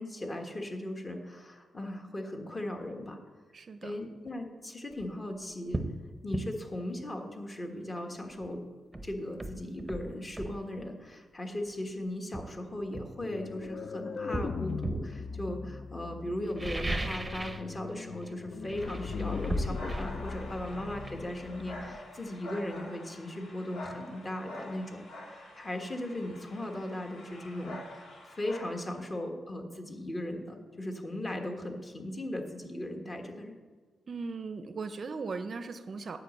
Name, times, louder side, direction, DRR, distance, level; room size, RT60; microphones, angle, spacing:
voice 1, 0.0-3.2 3.8-5.9 6.2-8.6 9.0-25.0 25.3-33.6, left 1 dB, 25° left, 3 dB, 1.3 m, -38 dB
voice 2, 3.5-3.9 34.1-36.2, right 4 dB, 45° right, 10 dB, 0.5 m, -38 dB
sound 1, 4.9-5.1 5.7-6.0 6.3-6.5 8.4-8.5 8.9-10.6 11.7-11.8 12.3-13.7 14.3-15.1 16.4-17.7 18.0-18.3 18.6-22.2 22.5-22.6, right 2 dB, 15° right, 0.7 m, -37 dB
sound 2, 13.2-22.0, left 5 dB, 50° left, 0.3 m, -39 dB
sound 3, 18.7-29.0, left 1 dB, 85° left, 2.0 m, -47 dB
9.5 x 5.1 x 7.3 m, 1.5 s
cardioid pair, 110°, 0 cm